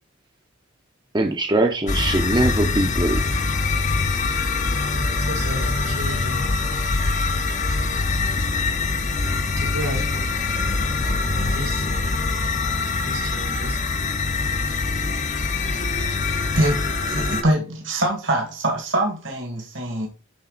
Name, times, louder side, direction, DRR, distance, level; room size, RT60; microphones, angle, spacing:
voice 1, 1.1-3.2, right 2 dB, 20° right, 0.8 m, -21 dB
sound 1, 1.9-17.4, left 3 dB, 35° left, 0.8 m, -23 dB
voice 2, 4.9-6.4 9.6-10.1 11.4-11.8 13.1-13.8, right 1 dB, 85° right, 3.8 m, -33 dB
voice 3, 16.5-20.1, right 1 dB, 65° right, 1.9 m, -24 dB
11.5 x 4.0 x 4.0 m
head